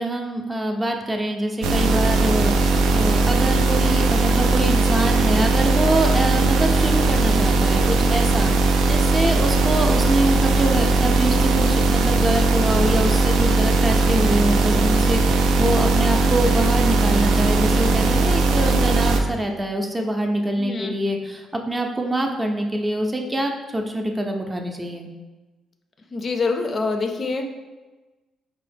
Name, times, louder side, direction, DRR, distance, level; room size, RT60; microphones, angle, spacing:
voice 1, 0.0-25.1, right 1 dB, 20° right, 3 dB, 0.4 m, -25 dB
sound 1, 1.6-19.2, right 3 dB, 85° right, 0.3 m, -19 dB
voice 2, 20.6-21.0 26.1-27.4, left 4 dB, 40° left, 5 dB, 0.4 m, -25 dB
4.6 x 2.1 x 3.3 m, 1.2 s
cardioid pair, 90°, 0 cm